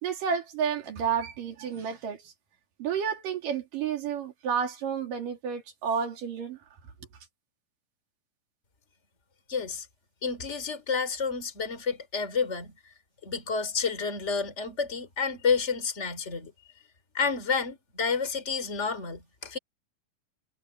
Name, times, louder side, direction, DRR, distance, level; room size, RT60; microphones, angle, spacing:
voice 1, 0.0-2.3 2.8-6.6, right 7 dB, 90° right, 4.5 m, -31 dB
voice 2, 9.5-9.9 10.2-12.7 13.2-16.5 17.1-19.6, left 5 dB, 20° left, 3.3 m, -30 dB
omnidirectional pair, 3.8 m